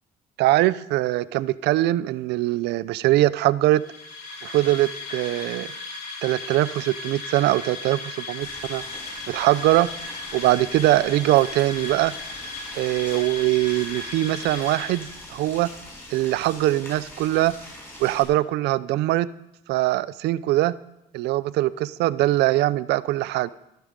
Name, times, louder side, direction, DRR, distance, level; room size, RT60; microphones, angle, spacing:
voice 1, 0.4-3.8 4.4-5.7 6.2-8.8 9.3-9.9 10.3-12.1 12.8-15.7 16.1-17.5 18.0-19.3 19.7-20.8 21.1-23.5, right 16 dB, 80° right, 18 dB, 0.6 m, -22 dB
sound 1, 3.7-15.6, left 3 dB, 70° left, 4.5 m, -36 dB
Boiling, 8.4-18.2, left 1 dB, 15° left, 6.9 m, -43 dB
14.5 x 11.5 x 5.2 m, 0.83 s
cardioid pair, 110°, 17 cm